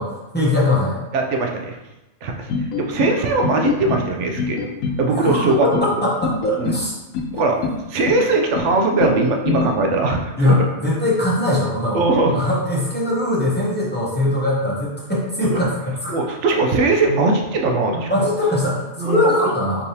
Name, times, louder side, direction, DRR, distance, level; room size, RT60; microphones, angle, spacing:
voice 1, 0.0-1.0 5.1-6.9 10.4-12.1 12.3-16.2 18.1-19.8, left 1 dB, 10° left, -6 dB, 0.7 m, -21 dB
voice 2, 1.1-1.8 2.2-2.5 2.8-4.6 5.0-5.7 6.6-6.8 7.3-7.6 7.9-10.6 11.9-12.4 15.5-15.6 16.1-18.3 19.0-19.3, right 3 dB, 65° right, 2 dB, 0.9 m, -20 dB
sound 1, 2.5-3.1 3.4-4.1 4.4-5.0 5.3-5.9 6.2-6.8 7.1-7.8 8.1-8.7 9.0-9.7, left 5 dB, 90° left, 1.0 m, -24 dB
4.5 x 3.3 x 2.8 m, 1.0 s
omnidirectional pair, 1.4 m